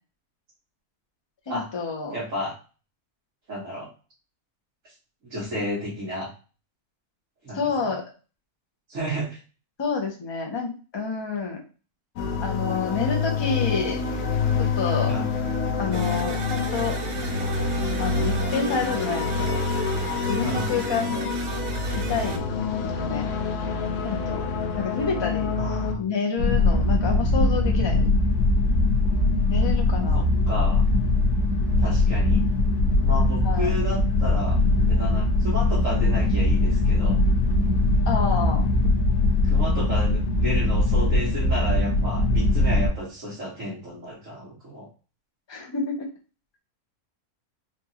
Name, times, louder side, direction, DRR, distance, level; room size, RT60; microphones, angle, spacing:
voice 1, 1.5-2.1 7.5-8.0 9.8-11.6 12.4-14.0 14.8-15.1 15.8-17.0 18.0-19.6 20.3-21.3 22.0-22.4 22.8-23.3 24.0-24.4 24.8-25.5 26.0-28.1 29.5-30.2 33.4-33.8 38.1-38.6 45.5-46.1, left 4 dB, 35° left, 2 dB, 0.4 m, -28 dB
voice 2, 2.1-2.5 3.5-3.9 4.8-4.9 5.2-6.3 7.4-7.9 8.9-9.4 15.0-15.3 20.4-20.8 25.6-26.0 30.1-30.8 31.8-32.4 33.0-34.6 34.8-37.2 39.4-44.9, equal, 60° right, -7 dB, 1.6 m, -32 dB
sound 1, 12.2-25.9, left 4 dB, 65° left, 0.9 m, -27 dB
sound 2, 15.9-22.4, right 6 dB, 80° right, 1.2 m, -36 dB
sound 3, 26.4-42.9, left 2 dB, 85° left, 1.3 m, -21 dB
4.4 x 2.4 x 2.8 m, 0.35 s
omnidirectional pair, 1.6 m